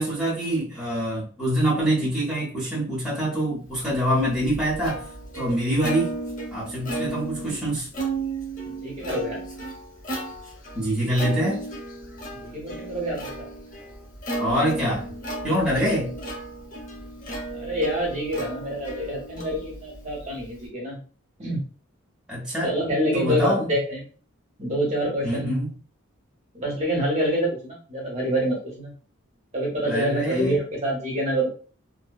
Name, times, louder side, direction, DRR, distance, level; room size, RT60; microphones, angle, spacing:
voice 1, 0.0-5.0 5.3-6.1 6.5-7.9 10.7-11.6 14.4-15.1 15.4-16.1 22.3-22.7 23.1-23.6 25.2-25.7 29.9-30.6, equal, 5° right, -7 dB, 0.7 m, -25 dB
Plucked string instrument, 3.9-20.7, right 2 dB, 40° left, 0.6 m, -34 dB
voice 2, 8.6-9.4 12.3-13.5 17.5-21.0 21.4-21.6 22.6-24.0 24.6-25.6 26.5-28.9 29.5-31.5, right 1 dB, 30° right, -2 dB, 0.8 m, -26 dB
2.6 x 2.1 x 2.2 m, 0.40 s
head